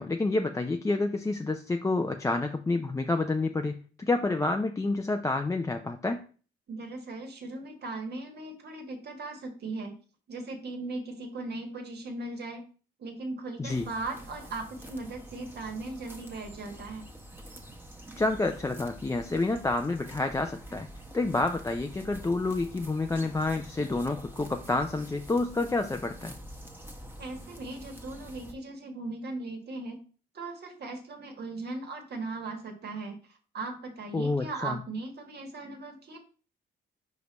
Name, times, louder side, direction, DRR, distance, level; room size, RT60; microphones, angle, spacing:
voice 1, 0.0-6.2 13.6-13.9 18.2-20.9 21.1-26.3 34.1-34.8, left 2 dB, 15° left, 4 dB, 0.5 m, -29 dB
voice 2, 6.7-10.0 10.3-12.6 13.0-17.0 27.2-30.0 30.3-33.2 33.5-36.2, right 3 dB, 55° right, 4 dB, 1.6 m, -38 dB
sound 1, 13.7-28.5, right 1 dB, 10° right, 1.1 m, -46 dB
5.1 x 4.6 x 4.1 m, 0.39 s
cardioid pair, 90°, 20 cm